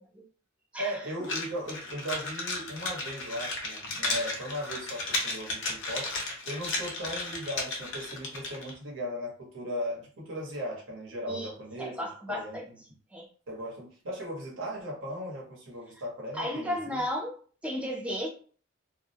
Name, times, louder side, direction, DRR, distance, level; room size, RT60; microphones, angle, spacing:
voice 1, 0.8-12.7 13.5-17.1, equal, 75° right, -3 dB, 1.0 m, -37 dB
sound 1, 1.2-8.7, left 2 dB, 65° left, 0.6 m, -34 dB
voice 2, 11.8-12.7 13.1-13.3 16.3-17.3 17.6-18.3, equal, 5° right, 0 dB, 0.4 m, -33 dB
2.3 x 2.0 x 2.7 m, 0.42 s
head